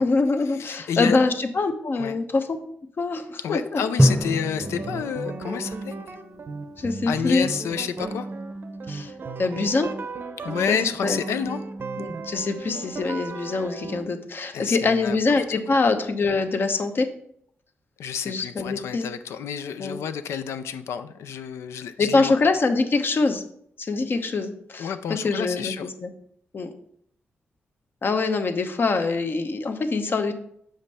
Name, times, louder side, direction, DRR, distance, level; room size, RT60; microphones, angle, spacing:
voice 1, 0.0-2.6 3.0-3.8 6.8-7.5 8.9-9.1 9.4-9.9 10.7-11.2 12.0-17.1 18.2-19.1 19.8-20.0 22.0-23.4 23.8-25.7 26.0-26.1 26.5-26.7 28.0-30.3, left 3 dB, 55° left, 7 dB, 0.8 m, -24 dB
voice 2, 0.5-1.2 2.0-2.2 3.4-6.0 7.1-8.3 10.4-11.6 14.5-15.2 18.0-22.3 24.8-25.9, left 7 dB, 85° left, 10 dB, 0.5 m, -29 dB
Drum, 4.0-6.6, equal, 5° right, 0.8 m, -25 dB
sound 1, 4.6-14.0, right 3 dB, 55° right, 0.6 m, -35 dB
6.3 x 5.1 x 4.2 m, 0.68 s
cardioid pair, 60°, 5 cm